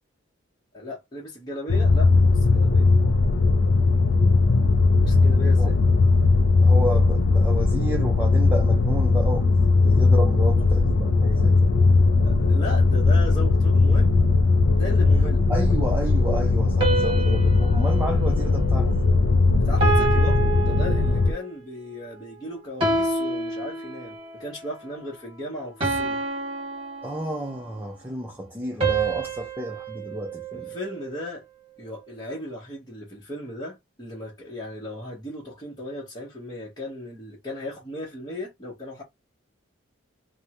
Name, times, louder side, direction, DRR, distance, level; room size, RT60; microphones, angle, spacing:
voice 1, 0.7-2.9 5.0-5.8 12.2-14.2 14.8-15.4 19.5-26.2 30.5-31.4 31.8-39.0, left 1 dB, 20° left, 0.9 m, -36 dB
sound 1, 1.7-21.3, left 3 dB, 65° left, 0.4 m, -19 dB
voice 2, 6.6-11.6 15.5-19.0 27.0-30.8, right 1 dB, 10° right, 0.5 m, -31 dB
sound 2, 16.8-19.3 19.8-21.6 22.8-24.3 25.8-27.7 28.8-31.2, right 3 dB, 30° right, 1.4 m, -28 dB
3.4 x 2.1 x 2.8 m
head